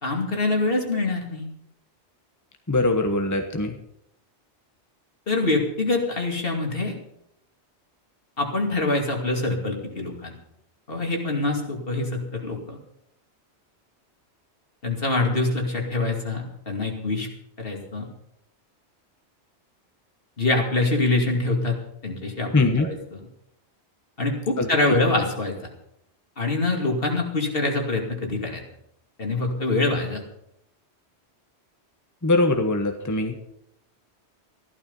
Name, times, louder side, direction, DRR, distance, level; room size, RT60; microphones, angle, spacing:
voice 1, 0.0-1.4 5.3-7.0 8.4-10.3 10.9-12.8 14.8-17.3 17.6-18.1 20.4-21.8 22.0-23.2 24.2-25.5 26.4-28.6 29.2-30.2, left 2 dB, 55° left, 1 dB, 2.7 m, -25 dB
voice 2, 2.7-3.7 22.5-22.9 24.6-24.7 32.2-33.5, left 2 dB, 15° left, 5 dB, 1.1 m, -22 dB
15.0 x 12.0 x 5.5 m, 0.76 s
omnidirectional pair, 1.1 m